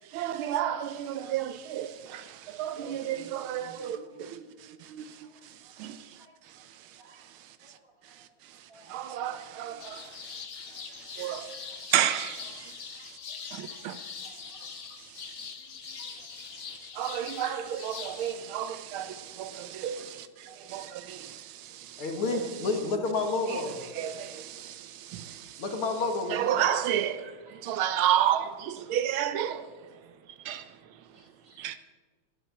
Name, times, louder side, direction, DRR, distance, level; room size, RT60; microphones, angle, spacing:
voice 1, 0.0-7.8 8.1-13.2 13.4-15.5 15.9-22.0 22.3-22.4 23.5-23.6 23.9-25.6 26.3-29.7 30.4-31.0 31.6-31.8, right 10 dB, 75° right, 1.5 m, -33 dB
voice 2, 2.8-4.4 5.0-5.7 6.2-6.3 7.0-7.3 7.6-8.2 8.7-9.5 9.8-10.2 10.7-11.8 12.9-13.8 14.2-14.7 15.3-16.3 20.0-20.1 20.4-20.7 27.6-27.8 31.1-31.8, right 2 dB, 40° right, 2.7 m, -56 dB
sound 1, 9.8-18.3, left 6 dB, 45° left, 1.0 m, -43 dB
voice 3, 22.0-23.7 25.6-26.5, left 3 dB, 75° left, 2.7 m, -29 dB
12.0 x 10.0 x 8.4 m
omnidirectional pair, 2.4 m